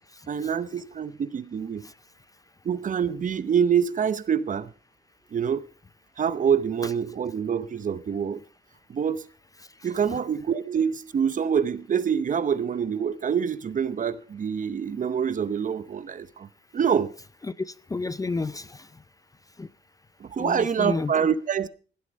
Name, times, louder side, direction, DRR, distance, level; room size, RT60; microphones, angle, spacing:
voice 1, 0.3-1.9 2.6-4.7 5.3-5.6 6.2-8.4 8.9-9.2 9.8-16.5 16.7-17.1 20.2-21.7, right 7 dB, 40° right, 0.8 m, -26 dB
voice 2, 9.8-10.2 17.4-18.9 19.6-19.7 20.4-21.1, left 3 dB, 15° left, 0.5 m, -31 dB
16.0 x 8.2 x 5.2 m
cardioid pair, 90°, 20 cm